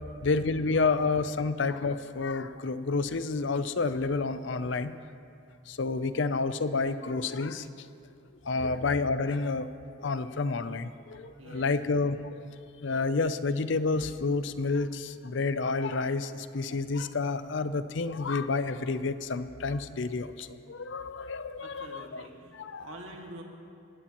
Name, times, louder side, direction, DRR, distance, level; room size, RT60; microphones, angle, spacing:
voice 1, 0.2-5.0 5.7-7.7 8.5-9.7 10.0-12.4 12.8-22.2 22.6-22.8, left 4 dB, 65° left, 12 dB, 0.5 m, -29 dB
voice 2, 11.4-11.7 21.6-23.4, right 1 dB, 80° right, 0 dB, 2.0 m, -46 dB
20.0 x 16.0 x 3.0 m, 2.4 s
head